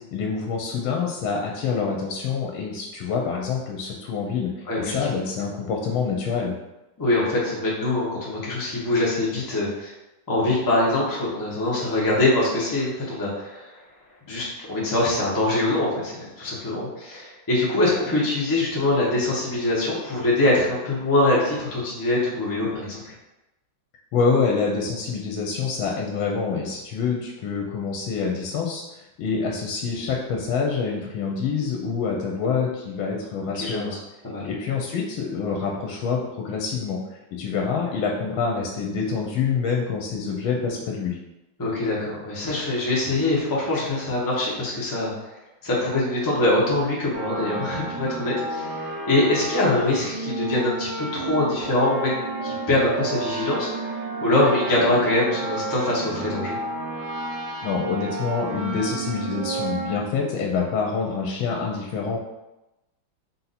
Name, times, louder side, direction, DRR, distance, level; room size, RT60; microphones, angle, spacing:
voice 1, 0.1-4.5 4.8-6.5 24.1-34.0 34.4-41.2 57.6-62.2, left 5 dB, 80° left, 0 dB, 1.4 m, -26 dB
voice 2, 4.7-5.0 7.0-9.9 10.3-13.8 14.3-23.1 33.6-33.9 34.2-34.5 41.6-45.1 45.6-56.6, left 2 dB, 20° left, -6 dB, 0.6 m, -23 dB
sound 1, 47.1-60.0, right 3 dB, 75° right, 1.4 m, -31 dB
4.1 x 2.7 x 4.1 m, 0.95 s
omnidirectional pair, 2.2 m